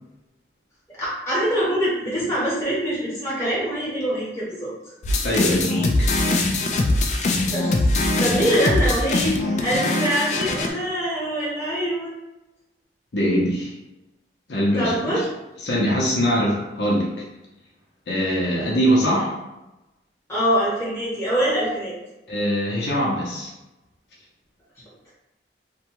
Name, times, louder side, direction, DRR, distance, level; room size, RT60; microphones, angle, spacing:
voice 1, 0.9-4.7 7.5-7.7 8.0-9.3 9.6-12.1 14.8-15.3 20.3-21.9, equal, 15° left, -8 dB, 1.1 m, -24 dB
sound 1, 5.0-10.7, left 2 dB, 40° left, 0.3 m, -22 dB
voice 2, 5.2-6.1 13.1-13.7 14.5-15.2 15.6-17.1 18.1-19.4 22.3-23.5, equal, 80° left, -4 dB, 0.7 m, -22 dB
2.6 x 2.3 x 2.9 m, 0.99 s
head